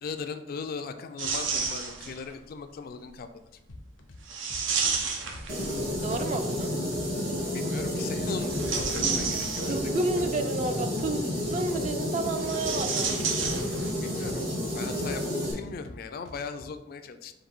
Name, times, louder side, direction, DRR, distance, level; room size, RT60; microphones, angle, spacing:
voice 1, 0.0-3.3 7.5-9.9 14.0-14.5 14.7-17.3, left 5 dB, 50° left, 9 dB, 0.3 m, -38 dB
sound 1, 1.2-2.3 4.3-6.1 8.3-10.1 12.4-14.1 14.4-14.5 15.4-15.6, right 5 dB, 90° right, 0.7 m, -31 dB
sound 2, 3.7-4.2 4.5-5.4 5.7-7.4 7.7-8.7 9.0-10.7 11.0-11.9 12.2-13.9 14.2-15.1 15.4-16.7, left 2 dB, 85° left, 0.6 m, -46 dB
sound 3, 5.5-15.5, left 1 dB, 55° right, 1.6 m, -31 dB
voice 2, 6.0-6.7 9.7-13.2, right 2 dB, 35° right, 7 dB, 0.3 m, -31 dB
3.9 x 2.6 x 4.3 m, 0.86 s
head